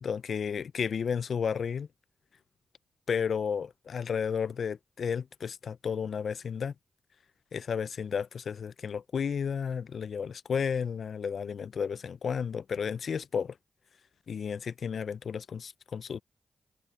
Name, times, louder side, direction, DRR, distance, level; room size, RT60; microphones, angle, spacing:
voice 1, 0.0-1.9 3.1-6.7 7.5-13.5 14.3-16.2, left 6 dB, 75° left, 0.5 m, -32 dB
supercardioid pair, 45°, 0 cm